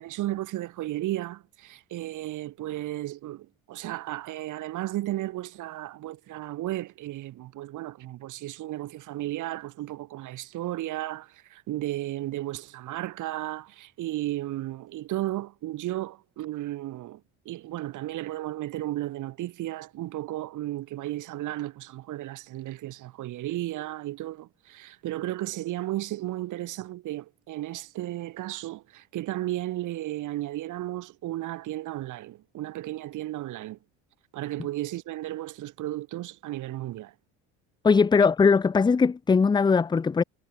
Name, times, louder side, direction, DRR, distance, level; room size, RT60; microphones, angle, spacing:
voice 1, 0.0-33.8 34.3-37.1, right 15 dB, 60° right, 4.9 m, -34 dB
voice 2, 37.8-40.2, left 5 dB, 15° left, 0.5 m, -20 dB
cardioid pair, 120°, 34 cm